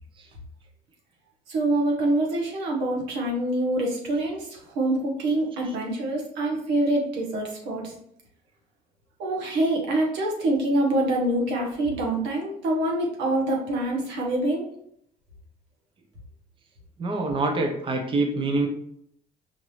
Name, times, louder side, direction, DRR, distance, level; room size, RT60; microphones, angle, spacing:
voice 1, 1.5-4.4 4.7-7.9 9.2-14.7, right 1 dB, 90° right, -1 dB, 1.2 m, -25 dB
voice 2, 17.0-18.7, right 2 dB, 30° right, 3 dB, 0.7 m, -25 dB
4.9 x 2.6 x 3.1 m, 0.70 s
cardioid pair, 110°, 17 cm